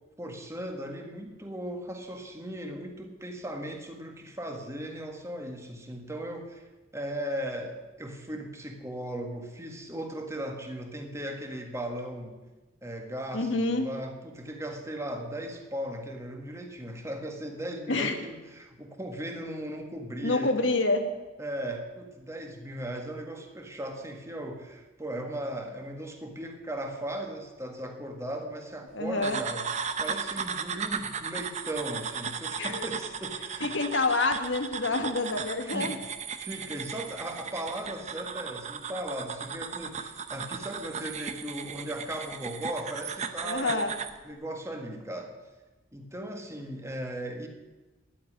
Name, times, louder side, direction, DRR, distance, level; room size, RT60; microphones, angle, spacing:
voice 1, 0.2-6.6 6.9-12.4 12.8-20.7 21.4-29.6 30.0-33.7 35.6-35.9 36.4-43.9 44.2-45.3 45.9-47.5, right 1 dB, 15° right, 3 dB, 1.7 m, -37 dB
voice 2, 13.3-13.9 17.9-18.2 20.2-21.1 28.9-29.4 32.6-32.9 33.6-36.0 43.4-43.9, left 2 dB, 90° left, 6 dB, 1.6 m, -27 dB
sound 1, 29.2-44.2, right 6 dB, 40° right, 0.8 m, -36 dB
11.0 x 8.7 x 9.9 m, 1.2 s
head